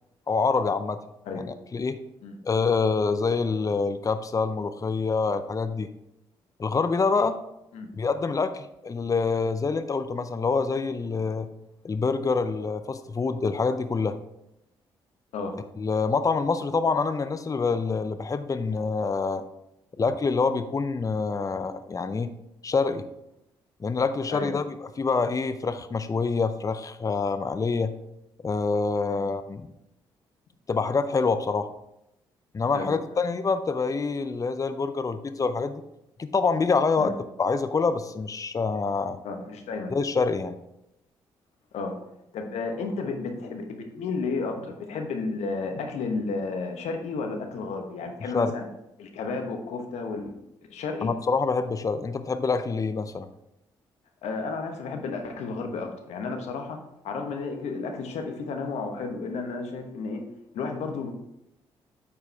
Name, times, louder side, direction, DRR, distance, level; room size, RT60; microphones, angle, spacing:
voice 1, 0.3-1.0 1.3-2.0 2.4-5.9 6.6-7.4 8.0-11.5 11.8-14.1 15.8-19.4 20.0-22.3 22.6-23.0 23.8-27.9 28.4-29.7 30.7-31.7 32.5-35.8 36.2-39.2 39.9-40.6 48.3-48.5 51.0-53.3, left 4 dB, 30° left, 11 dB, 0.6 m, -26 dB
voice 2, 39.2-39.9 41.7-42.0 42.3-48.6 49.0-50.3 50.7-51.1 54.2-60.2 60.5-61.2, left 4 dB, 70° left, 4 dB, 1.1 m, -32 dB
8.3 x 4.7 x 3.5 m, 0.85 s
hypercardioid pair, 45°, 12 cm